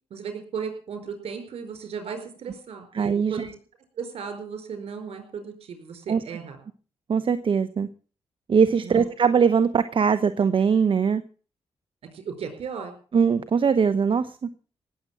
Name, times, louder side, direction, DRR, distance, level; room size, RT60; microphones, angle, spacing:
voice 1, 0.1-3.5 4.0-6.6 8.8-9.1 12.1-12.9, right 6 dB, 75° right, 6 dB, 4.9 m, -35 dB
voice 2, 2.9-3.5 6.1-6.2 7.1-7.9 8.5-11.2 13.1-14.4, right 6 dB, 55° right, 12 dB, 0.9 m, -21 dB
18.5 x 7.8 x 7.4 m, 0.41 s
cardioid pair, 65°, 11 cm